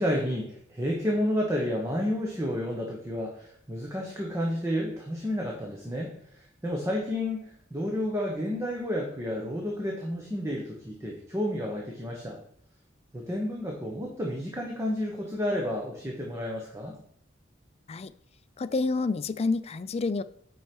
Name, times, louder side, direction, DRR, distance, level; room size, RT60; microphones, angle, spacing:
voice 1, 0.0-12.4 13.1-17.0, equal, 15° right, -1 dB, 1.0 m, -31 dB
voice 2, 18.6-20.2, left 3 dB, 35° left, 14 dB, 0.3 m, -28 dB
8.3 x 4.7 x 4.6 m, 0.65 s
head